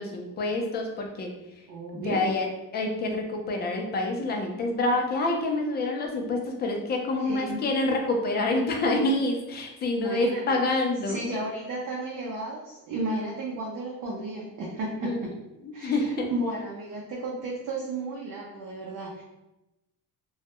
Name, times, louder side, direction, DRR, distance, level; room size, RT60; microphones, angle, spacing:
voice 1, 0.0-1.3 1.9-2.5 2.7-11.3 15.0-15.2 15.6-16.3, left 2 dB, 30° left, 2 dB, 0.4 m, -27 dB
voice 2, 1.7-2.2 7.2-7.6 9.9-10.6 11.0-15.3 15.7-19.2, right 2 dB, 65° right, -4 dB, 0.6 m, -33 dB
2.3 x 2.1 x 2.8 m, 0.96 s
cardioid pair, 140°, 33 cm